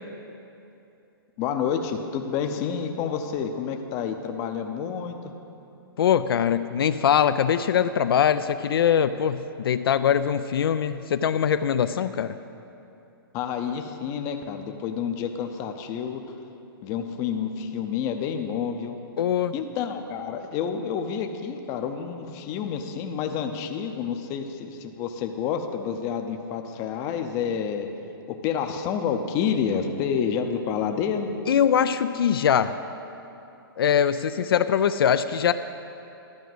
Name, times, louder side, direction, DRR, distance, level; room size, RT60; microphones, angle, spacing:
voice 1, 1.4-5.2 13.3-16.2 16.8-19.0 19.5-27.9 28.3-31.3, left 7 dB, 25° left, 6 dB, 0.6 m, -29 dB
voice 2, 6.0-12.4 19.2-19.5 31.5-32.7 33.8-35.5, left 8 dB, 75° left, 11 dB, 0.4 m, -22 dB
12.0 x 5.0 x 7.8 m, 2.8 s
hypercardioid pair, 155°, 13 cm